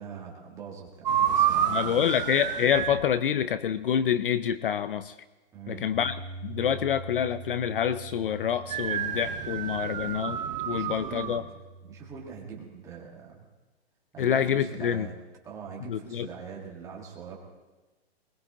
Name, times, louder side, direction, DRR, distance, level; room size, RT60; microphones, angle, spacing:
voice 1, 0.0-2.2 5.5-5.8 10.6-11.4 11.8-13.4 14.1-15.1 15.4-17.4, right 7 dB, 10° right, -2 dB, 1.6 m, -42 dB
sound 1, 1.1-3.0 8.7-11.4, right 9 dB, 40° right, 1.0 m, -29 dB
voice 2, 1.7-5.1 5.7-6.2 6.4-10.4 10.7-11.4 14.2-15.1 15.9-16.3, left 9 dB, 55° left, 15 dB, 0.5 m, -27 dB
Bass guitar, 5.9-12.2, right 3 dB, 85° left, 2.8 m, -44 dB
21.0 x 20.5 x 2.9 m, 1.2 s
hypercardioid pair, 170°, 33 cm